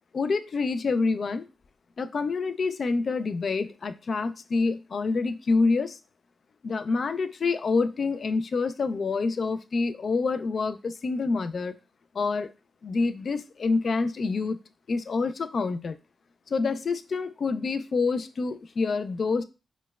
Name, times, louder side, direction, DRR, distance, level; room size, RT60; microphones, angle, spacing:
voice 1, 0.1-1.5 2.0-6.0 6.6-11.8 12.1-12.5 12.8-14.6 14.9-16.0 16.5-19.4, left 4 dB, 60° left, 12 dB, 0.3 m, -27 dB
4.0 x 2.1 x 2.3 m, 0.29 s
cardioid pair, 55°, 0 cm